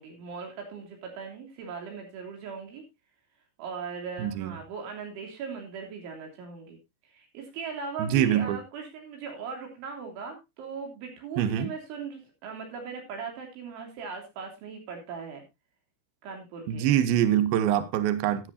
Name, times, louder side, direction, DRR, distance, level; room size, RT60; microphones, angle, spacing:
voice 1, 0.0-2.8 3.6-6.8 7.1-15.4 16.2-16.9, right 5 dB, 70° right, 5.5 m, -39 dB
voice 2, 4.2-4.5 8.0-8.6 11.4-11.7 16.7-18.5, right 11 dB, 90° right, 2.1 m, -24 dB
15.5 x 10.0 x 2.7 m
omnidirectional pair, 5.7 m